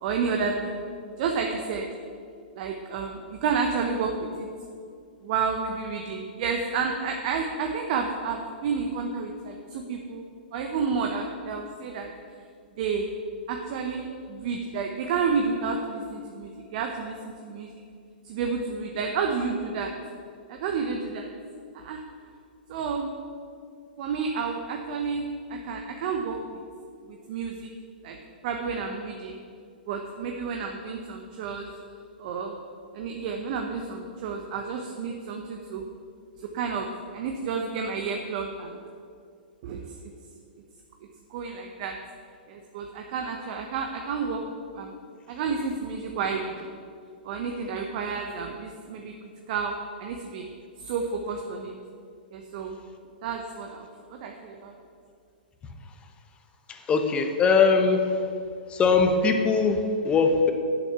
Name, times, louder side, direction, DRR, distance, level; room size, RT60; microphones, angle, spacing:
voice 1, 0.0-0.8 1.2-1.9 2.5-4.5 5.2-10.2 10.5-12.1 12.8-13.1 13.5-17.8 18.2-19.9 20.5-21.3 21.7-22.0 22.7-23.1 24.0-26.6 27.1-27.7 28.0-28.2 28.4-29.4 29.9-31.7 32.2-32.6 32.9-35.8 36.4-38.8 39.6-39.8 41.3-42.0 42.5-44.4 44.7-44.9 45.3-46.8 47.2-49.1 49.5-50.5 50.8-51.7 52.3-52.8 53.2-54.7, right 5 dB, 50° right, 3 dB, 0.9 m, -30 dB
voice 2, 56.7-58.3 58.7-60.5, left 4 dB, 20° left, 5 dB, 1.1 m, -21 dB
8.4 x 7.1 x 6.8 m, 2.3 s
hypercardioid pair, 125°, 5 cm